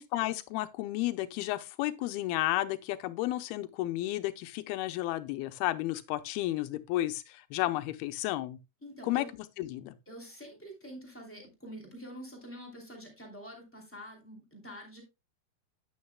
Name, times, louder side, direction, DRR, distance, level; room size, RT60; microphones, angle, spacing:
voice 1, 0.0-8.6 9.0-9.2 9.6-9.9, left 16 dB, 80° left, 2.5 m, -32 dB
voice 2, 8.8-9.3 10.1-15.0, equal, 5° left, 2.0 m, -46 dB
9.6 x 8.7 x 2.2 m
omnidirectional pair, 4.5 m